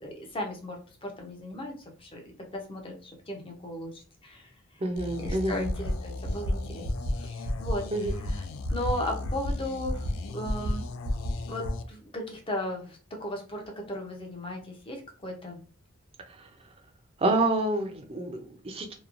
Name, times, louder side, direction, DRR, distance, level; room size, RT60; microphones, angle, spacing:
voice 1, 0.0-1.7 2.0-4.5 5.2-6.8 7.2-7.8 8.3-8.4 8.7-10.0 10.3-10.8 11.5-13.6 13.9-15.6, left 1 dB, 25° left, 1 dB, 0.6 m, -36 dB
voice 2, 4.8-5.6 7.9-8.1 16.4-16.5 17.2-18.9, right 2 dB, 25° right, 4 dB, 0.4 m, -28 dB
sound 1, 5.0-11.8, left 3 dB, 70° left, 0.3 m, -39 dB
sound 2, 5.3-5.4 5.6-5.9 6.2-6.5 6.8-7.1 7.4-7.7 8.0-8.3 8.6-8.9 9.2-9.5 9.8-10.1 10.4-10.7 11.0-11.3 11.6-11.7, equal, 90° right, 0.6 m, -28 dB
2.9 x 2.2 x 2.4 m, 0.40 s
head